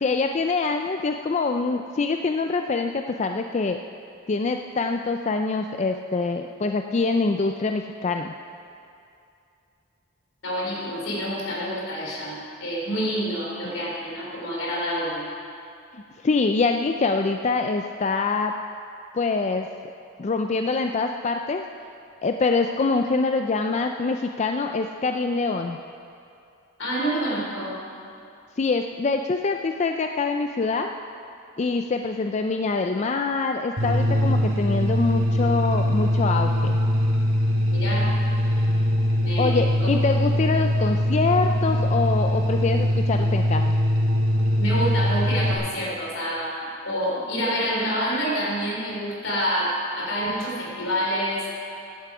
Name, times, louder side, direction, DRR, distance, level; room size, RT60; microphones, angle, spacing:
voice 1, 0.0-3.8 4.3-8.3 15.9-18.5 19.1-19.7 20.2-21.6 22.2-25.8 28.6-30.9 31.6-36.8 39.4-43.6, left 4 dB, 35° left, 5 dB, 0.4 m, -25 dB
voice 2, 10.4-15.2 26.8-27.8 37.7-38.1 39.2-39.7 44.6-51.5, equal, 70° left, -3 dB, 3.5 m, -27 dB
sound 1, 33.8-45.5, equal, 90° right, 2.0 m, -22 dB
15.0 x 10.5 x 4.9 m, 2.6 s
head